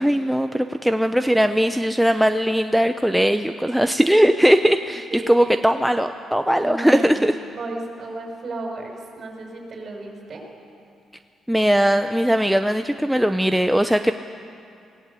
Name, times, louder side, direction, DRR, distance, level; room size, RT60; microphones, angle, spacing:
voice 1, 0.0-7.3 11.5-14.1, equal, ahead, 8 dB, 0.6 m, -19 dB
voice 2, 5.1-5.5 6.5-10.5, right 2 dB, 45° right, 1 dB, 5.6 m, -33 dB
20.0 x 18.0 x 8.4 m, 2.5 s
cardioid pair, 90°, 0 cm